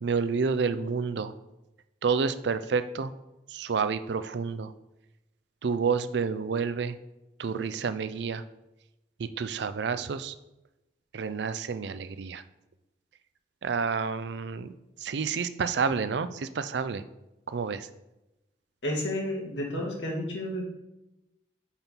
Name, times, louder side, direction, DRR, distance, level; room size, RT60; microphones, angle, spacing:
voice 1, 0.0-1.3 2.0-3.1 3.5-4.7 5.6-6.9 7.4-8.4 9.2-10.3 11.1-12.4 13.6-14.7 15.0-17.0 17.5-17.9, right 5 dB, 70° right, 12 dB, 0.4 m, -29 dB
voice 2, 18.8-20.6, left 1 dB, 80° left, -2 dB, 2.0 m, -31 dB
5.8 x 4.4 x 5.3 m, 0.97 s
head